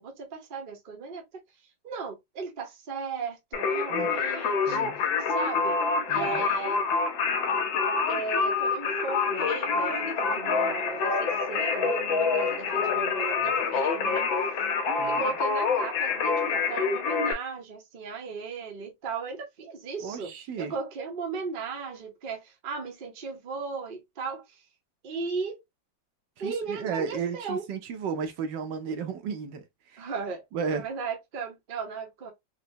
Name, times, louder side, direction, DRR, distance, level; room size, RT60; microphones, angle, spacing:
voice 1, 0.0-1.4 1.8-4.9 5.3-5.8 6.1-6.8 8.1-14.3 15.0-20.3 20.6-24.6 25.0-25.6 26.4-27.6 30.0-32.3, right 5 dB, 50° right, 0.6 m, -36 dB
Singing, 3.5-17.3, left 5 dB, 80° left, 1.6 m, -26 dB
voice 2, 4.7-5.0 6.1-6.4 15.0-15.2 20.0-20.7 26.4-29.6 29.9-30.1 30.5-30.8, right 6 dB, 75° right, 1.2 m, -33 dB
4.0 x 2.1 x 2.6 m
omnidirectional pair, 2.1 m